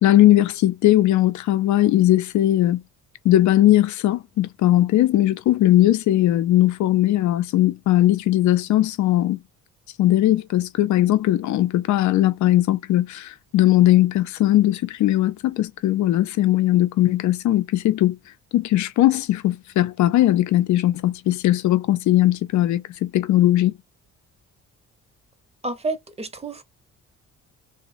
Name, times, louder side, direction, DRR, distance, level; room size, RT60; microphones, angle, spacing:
voice 1, 0.0-2.8 3.2-9.4 10.0-18.2 18.5-23.7, left 14 dB, 70° left, 0.5 m, -19 dB
voice 2, 25.6-26.7, right 3 dB, 20° right, 0.8 m, -30 dB
2.9 x 2.1 x 2.4 m
cardioid pair, 90°, 30 cm